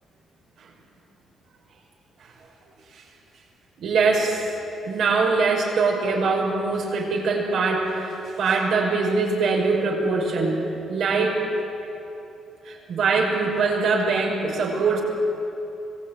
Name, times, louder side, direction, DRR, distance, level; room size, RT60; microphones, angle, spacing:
voice 1, 3.8-4.4 4.8-10.6 10.9-11.4 12.6-15.0, right 4 dB, 75° right, -1 dB, 6.1 m, -22 dB
25.0 x 18.5 x 9.3 m, 2.9 s
cardioid pair, 90°, 0 cm